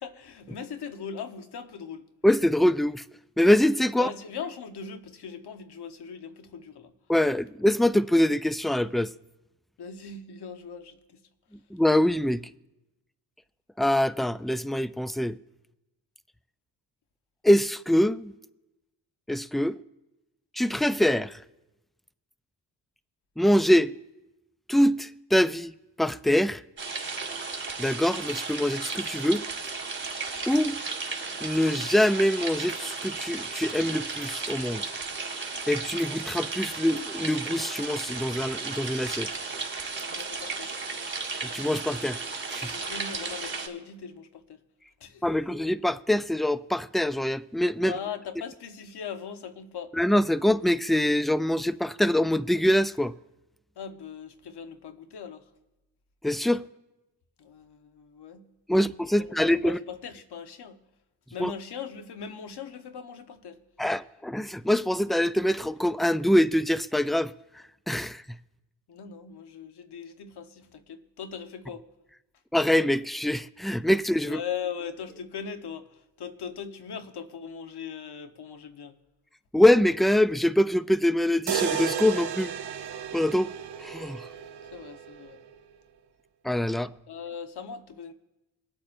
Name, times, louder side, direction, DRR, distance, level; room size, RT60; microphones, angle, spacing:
voice 1, 0.0-2.1 3.9-6.9 9.8-11.2 40.1-40.7 42.7-44.6 45.0-45.2 47.8-49.9 53.8-55.4 57.4-58.5 58.7-60.8 61.3-63.6 68.9-71.9 74.3-79.0 84.7-85.4 87.1-88.1, left 6 dB, 65° left, 1.3 m, -39 dB
voice 2, 2.2-3.0 3.4-4.1 7.1-9.1 11.7-12.4 13.8-15.4 17.4-18.3 19.3-19.8 20.6-21.4 23.4-23.9 24.7-25.7 26.0-26.6 27.8-29.5 30.5-30.8 31.4-34.8 35.7-39.3 41.5-42.2 42.5-42.7 45.2-47.9 50.0-53.1 56.2-56.6 58.7-59.8 61.4-61.5 63.8-67.3 67.9-68.2 72.5-74.4 79.5-82.5 83.1-83.5 83.8-84.2 86.4-86.9, left 1 dB, ahead, 0.3 m, -24 dB
sound 1, 26.8-43.7, right 4 dB, 30° right, 2.4 m, -34 dB
sound 2, 81.5-85.5, right 8 dB, 65° right, 1.1 m, -33 dB
24.5 x 8.5 x 2.6 m
cardioid pair, 65°, 42 cm